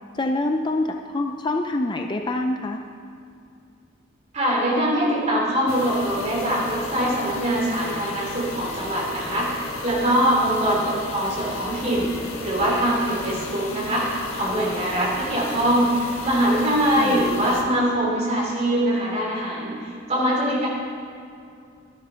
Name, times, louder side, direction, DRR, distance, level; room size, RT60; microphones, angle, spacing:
voice 1, 0.1-2.8 17.0-17.2, left 2 dB, 20° left, 4 dB, 0.5 m, -25 dB
voice 2, 4.3-12.1 12.4-20.7, equal, 35° right, -4 dB, 3.4 m, -23 dB
sound 1, 5.7-17.6, left 2 dB, 80° left, 1.6 m, -35 dB
12.5 x 11.0 x 5.7 m, 2.5 s
head